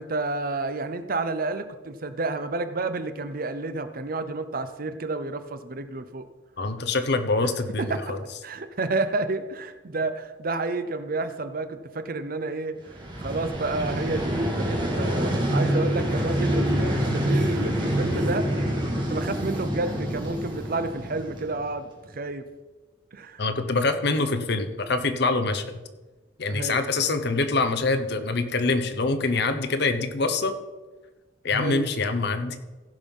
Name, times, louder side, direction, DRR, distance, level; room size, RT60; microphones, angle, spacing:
voice 1, 0.0-6.2 7.4-7.5 7.8-8.2 8.4-12.8 13.2-18.6 18.9-22.4 23.1-23.4 26.5-26.8 31.5-31.9, right 2 dB, 50° right, 10 dB, 0.7 m, -30 dB
voice 2, 6.6-8.2 23.4-25.6 26.4-30.5 31.4-32.6, left 3 dB, 60° left, 8 dB, 0.9 m, -25 dB
Vehicle, 12.8-21.8, right 1 dB, 25° right, 2.3 m, -26 dB
15.5 x 5.5 x 5.5 m, 1.2 s
head